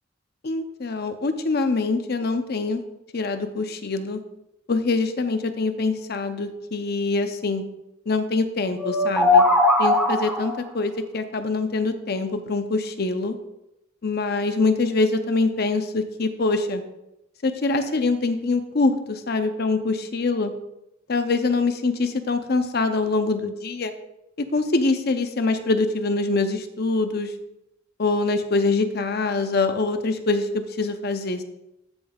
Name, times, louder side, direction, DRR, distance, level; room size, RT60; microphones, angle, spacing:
voice 1, 0.4-2.8 3.1-4.2 4.7-7.6 8.1-9.4 9.8-13.3 14.0-16.8 17.4-20.5 21.1-23.9 24.4-27.3 28.0-31.4, left 3 dB, 50° left, 8 dB, 0.7 m, -24 dB
sound 1, 8.8-10.6, left 2 dB, 5° right, 1.7 m, -19 dB
15.0 x 5.3 x 2.4 m, 0.88 s
head